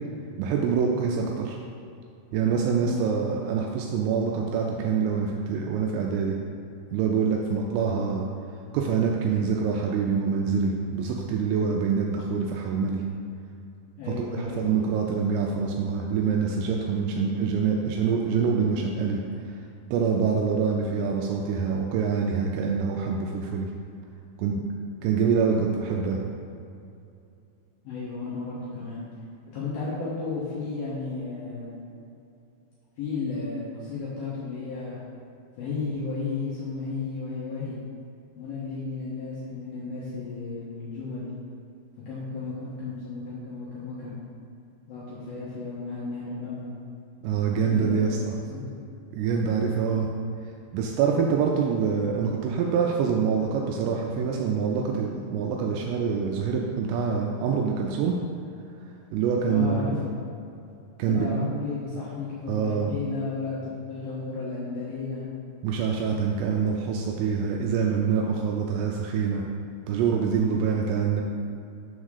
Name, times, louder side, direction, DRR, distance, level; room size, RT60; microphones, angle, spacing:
voice 1, 0.4-1.6 2.3-6.4 6.9-8.3 8.7-13.0 14.2-19.2 19.9-23.7 24.4-24.6 25.0-26.2 47.2-48.3 49.1-50.1 50.7-58.1 59.1-60.0 61.0-61.3 62.5-62.9 65.6-69.4 69.9-71.2, right 6 dB, 85° right, 0 dB, 3.1 m, -25 dB
voice 2, 2.8-3.1 14.0-14.8 27.8-29.0 29.5-31.8 33.0-35.0 35.6-37.8 38.4-41.3 42.1-44.2 44.9-46.7 47.5-48.7 59.5-60.2 61.0-65.3 70.3-70.6, left 4 dB, 85° left, -8 dB, 2.0 m, -33 dB
7.3 x 3.6 x 6.4 m, 2.6 s
omnidirectional pair, 5.9 m